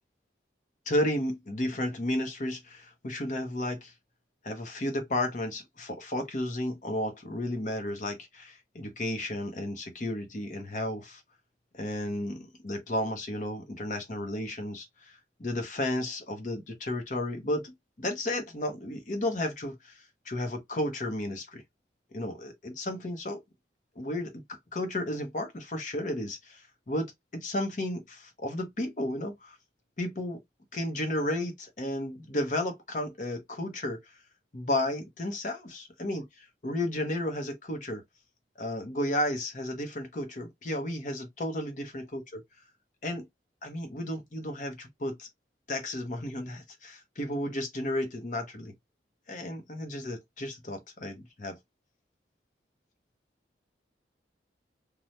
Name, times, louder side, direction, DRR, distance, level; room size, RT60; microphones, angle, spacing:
voice 1, 0.9-3.9 4.4-11.2 11.7-21.6 22.1-23.4 24.0-29.6 30.0-30.4 30.7-34.0 34.5-38.0 38.6-42.4 43.0-43.3 43.6-45.3 45.7-48.7 49.3-51.6, left 1 dB, 40° left, 0.8 m, -33 dB
3.2 x 2.2 x 2.7 m
head